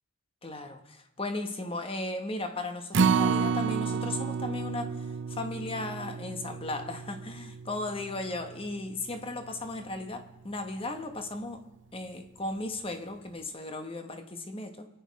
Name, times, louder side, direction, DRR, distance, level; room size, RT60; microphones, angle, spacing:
voice 1, 0.4-11.7 11.9-14.9, left 2 dB, 25° left, 1.1 m, -36 dB
Acoustic guitar, 2.9-9.2 9.6-9.7 10.2-10.3, right 5 dB, 55° right, 0.5 m, -30 dB
23.5 x 9.5 x 5.2 m
head